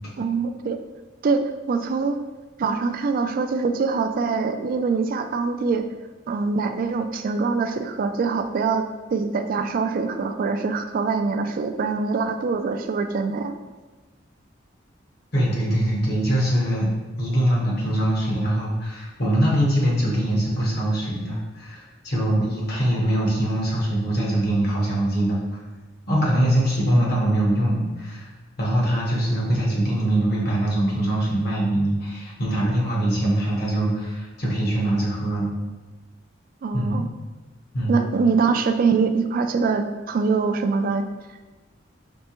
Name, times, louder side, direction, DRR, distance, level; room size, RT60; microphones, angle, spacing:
voice 1, 0.2-0.8 1.2-2.2 2.6-5.9 6.3-13.5 36.6-37.1 37.9-41.1, right 4 dB, 50° right, 8 dB, 0.3 m, -24 dB
voice 2, 15.3-16.9 17.2-25.4 26.1-28.3 28.6-35.5 36.7-37.1 37.7-38.0, right 1 dB, 60° left, -4 dB, 1.1 m, -23 dB
4.4 x 3.3 x 3.0 m, 1.2 s
head